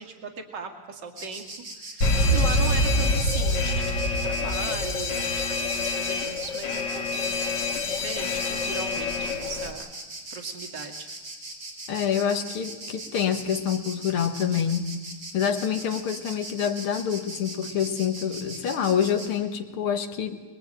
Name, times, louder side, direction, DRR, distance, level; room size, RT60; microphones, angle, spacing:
voice 1, 0.0-1.4 1.8-9.9 10.3-11.1 11.5-11.8, right 5 dB, 55° right, 5 dB, 2.9 m, -38 dB
Insect, 1.2-19.3, right 2 dB, 85° right, 4.9 m, -40 dB
Alarm, 2.0-9.7, left 2 dB, 55° left, 2.5 m, -26 dB
voice 2, 11.9-14.9 15.3-20.4, left 8 dB, 90° left, 6 dB, 2.4 m, -26 dB
24.0 x 21.5 x 9.1 m, 1.3 s
omnidirectional pair, 2.3 m